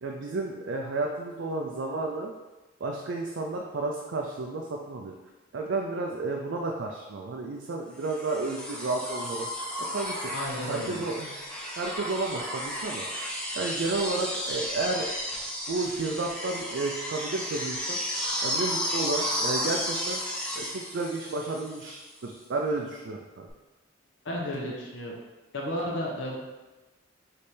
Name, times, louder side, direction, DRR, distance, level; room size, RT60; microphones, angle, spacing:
voice 1, 0.0-2.3 2.8-5.1 5.5-9.5 9.9-10.3 10.7-11.3 11.8-13.1 13.5-15.1 15.7-18.0 18.4-20.2 20.6-23.5, right 3 dB, 65° right, 0 dB, 0.4 m, -32 dB
sound 1, 8.0-22.0 23.5-23.6, equal, 5° left, 0.6 m, -33 dB
voice 2, 10.3-11.0 24.2-25.2 25.5-26.4, left 1 dB, 70° left, -2 dB, 0.7 m, -33 dB
3.3 x 3.3 x 4.2 m, 1.2 s
head